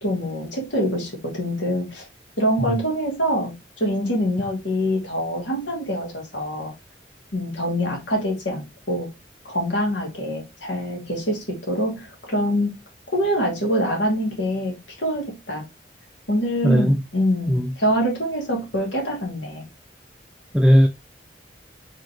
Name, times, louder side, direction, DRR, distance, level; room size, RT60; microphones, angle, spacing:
voice 1, 0.0-2.1 2.4-6.7 7.3-9.1 9.4-12.8 13.1-15.6 16.3-19.6, equal, 85° left, 2.1 m, -25 dB
voice 2, 16.6-17.0 17.5-17.7 20.5-20.9, equal, 5° right, 0.3 m, -17 dB
4.3 x 3.8 x 3.1 m
head